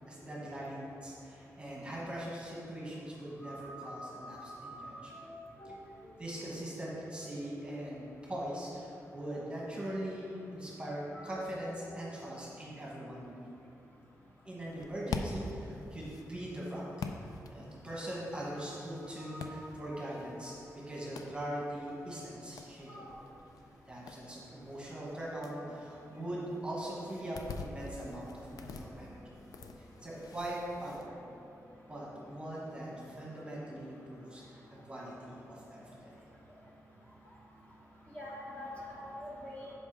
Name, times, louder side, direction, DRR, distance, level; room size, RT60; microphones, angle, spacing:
voice 1, 0.1-5.3 6.2-13.5 14.4-20.5 20.9-23.1 23.9-29.2 29.8-31.2 31.9-34.6 34.9-36.1, right 1 dB, 15° right, -5 dB, 1.2 m, -41 dB
voice 2, 3.4-5.3 5.6-5.7 11.1-11.2 11.9-12.0 19.2-19.9 20.3-20.5 22.9-23.1 38.1-39.7, equal, 25° left, -6 dB, 1.3 m, -46 dB
sound 1, 14.7-31.1, left 4 dB, 80° left, 0.4 m, -46 dB
5.4 x 4.6 x 6.1 m, 2.7 s
wide cardioid pair, 155°, 6 cm